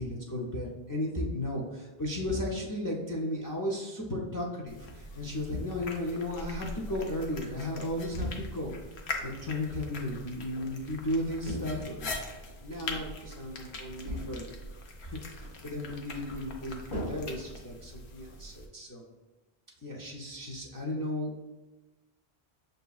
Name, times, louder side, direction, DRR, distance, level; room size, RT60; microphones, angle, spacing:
voice 1, 0.0-8.7 9.2-12.1 12.6-14.5 15.0-19.0 19.8-21.5, left 1 dB, 30° left, -2 dB, 0.3 m, -35 dB
sound 1, 2.3-2.9 5.5-6.2 8.2-8.8 11.5-12.4 14.1-14.6 16.9-18.0, left 1 dB, 55° left, 1.4 m, -39 dB
sound 2, 4.7-18.7, left 2 dB, 85° left, 0.9 m, -42 dB
6.7 x 2.6 x 2.3 m, 1.1 s
omnidirectional pair, 1.0 m